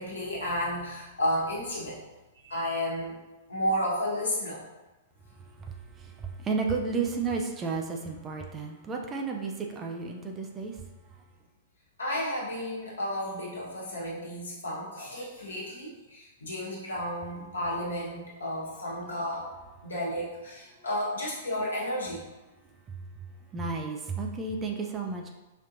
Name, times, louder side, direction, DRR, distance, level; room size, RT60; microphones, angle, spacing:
voice 1, 0.0-2.0 2.4-3.2 3.5-4.6 12.0-19.5 19.8-22.2, equal, 75° left, -5 dB, 1.2 m, -32 dB
voice 2, 5.6-10.8 22.9-23.0 23.5-25.3, right 4 dB, 20° right, 1 dB, 0.5 m, -32 dB
5.1 x 2.6 x 2.6 m, 1.1 s
figure-of-eight pair, 105°, 0 cm